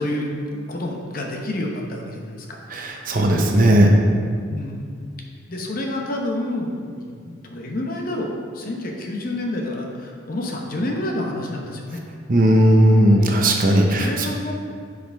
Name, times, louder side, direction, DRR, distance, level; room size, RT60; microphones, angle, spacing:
voice 1, 0.0-2.6 4.5-4.9 5.5-12.0 14.0-14.5, left 1 dB, 50° left, 1 dB, 0.9 m, -28 dB
voice 2, 2.7-3.9 12.3-14.3, right 1 dB, 45° right, 1 dB, 0.8 m, -16 dB
10.0 x 5.0 x 3.5 m, 2.2 s
head